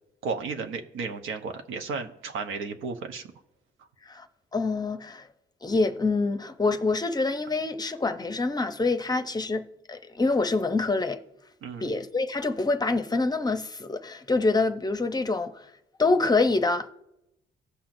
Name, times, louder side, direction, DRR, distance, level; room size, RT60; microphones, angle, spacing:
voice 1, 0.2-3.2 11.6-11.9, right 4 dB, 85° right, 0.9 m, -33 dB
voice 2, 4.5-5.3 5.6-11.2 11.8-15.7 16.0-16.9, left 3 dB, 20° left, 0.6 m, -26 dB
16.5 x 5.7 x 2.6 m
cardioid pair, 90°, 20 cm